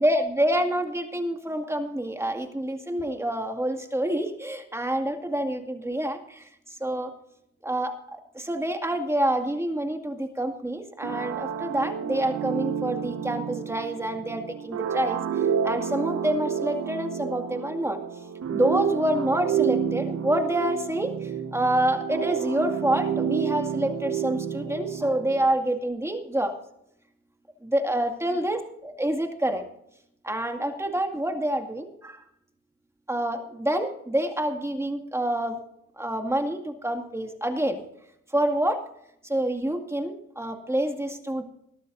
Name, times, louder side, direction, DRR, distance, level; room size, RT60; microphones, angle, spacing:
voice 1, 0.0-7.1 7.6-7.9 8.3-18.0 18.5-26.5 27.6-29.6 30.2-32.2 33.1-35.6 36.0-37.8 38.3-38.8 39.2-41.4, right 1 dB, 10° right, 5 dB, 2.2 m, -27 dB
sound 1, 11.0-25.6, right 8 dB, 55° right, 1.4 m, -30 dB
21.0 x 12.5 x 2.7 m, 0.74 s
cardioid pair, 90°, 30 cm